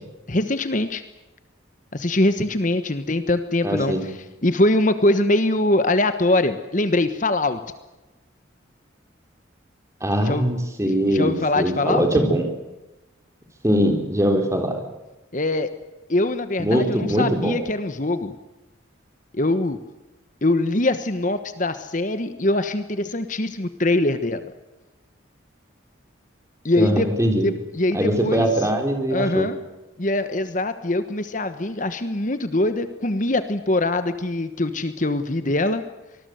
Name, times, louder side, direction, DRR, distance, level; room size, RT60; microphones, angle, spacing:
voice 1, 0.3-1.0 1.9-4.1 4.4-7.6 10.2-10.5 10.9-12.1 15.3-15.7 16.1-18.3 19.3-19.8 20.4-24.5 26.6-27.1 27.4-28.4 29.1-29.6 30.0-35.8, left 2 dB, 40° left, 10 dB, 1.2 m, -23 dB
voice 2, 3.6-4.0 10.0-12.5 13.6-14.8 16.6-17.6 26.8-27.5 27.9-29.5, equal, 15° right, 4 dB, 3.9 m, -21 dB
25.5 x 20.5 x 7.9 m, 1.0 s
head